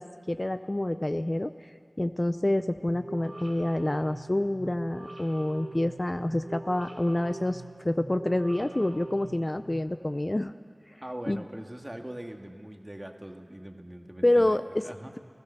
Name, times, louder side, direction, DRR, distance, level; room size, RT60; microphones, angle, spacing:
voice 1, 0.0-1.5 2.0-10.5 11.3-11.4 14.2-14.9, left 1 dB, 35° left, 10 dB, 0.5 m, -27 dB
sound 1, 2.9-9.8, right 2 dB, 80° right, 3.4 m, -43 dB
voice 2, 11.0-15.1, right 1 dB, 25° right, 4 dB, 1.8 m, -41 dB
29.5 x 17.0 x 6.9 m, 2.1 s
wide cardioid pair, 55°, 0 cm